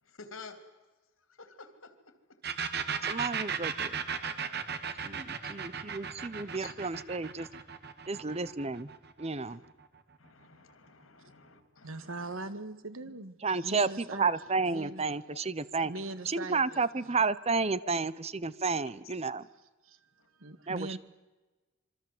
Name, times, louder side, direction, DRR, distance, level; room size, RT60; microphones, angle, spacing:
voice 1, 0.0-0.7 1.2-2.4 4.4-6.0 6.3-6.8 8.1-8.5 9.3-9.7 10.2-12.5 13.0-13.1 13.8-13.9 14.9-15.0 15.3-15.4 15.9-16.0 17.8-17.9 19.0-19.1 20.2-20.6, left 4 dB, 85° left, 3.4 m, -53 dB
sound 1, 2.4-10.0, right 6 dB, 50° right, 2.0 m, -36 dB
voice 2, 3.0-4.0 5.0-7.5 8.1-8.9 9.2-9.6 13.4-15.9 16.3-19.5 20.7-20.8, right 4 dB, 30° right, 0.9 m, -31 dB
voice 3, 11.8-14.3 14.7-15.1 15.6-17.2 19.8-20.0 20.4-21.0, right 2 dB, 85° right, 1.9 m, -41 dB
26.5 x 24.5 x 8.0 m
head